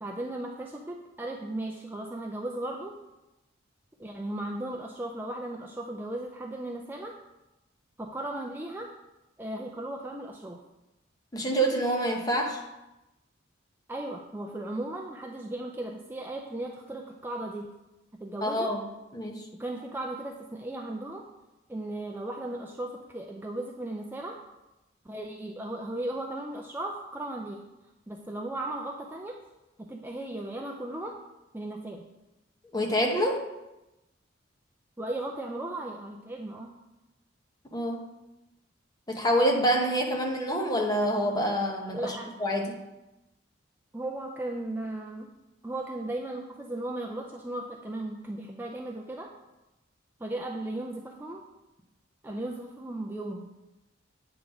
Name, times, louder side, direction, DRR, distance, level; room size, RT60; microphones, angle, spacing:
voice 1, 0.0-3.0 4.0-7.2 8.0-8.9 9.4-10.6 13.9-17.7 18.2-18.7 19.5-21.3 21.7-24.4 25.0-27.6 28.1-29.4 29.8-31.2 31.5-32.0 35.0-36.8 42.0-42.3 43.9-45.3 45.6-49.3 50.2-51.4 52.2-53.5, right 1 dB, 10° right, 1 dB, 0.4 m, -36 dB
voice 2, 11.3-12.6 18.4-18.8 19.1-19.4 32.7-33.5 37.7-38.1 39.1-42.8, equal, 20° left, 1 dB, 0.9 m, -27 dB
8.6 x 3.9 x 5.9 m, 0.98 s
head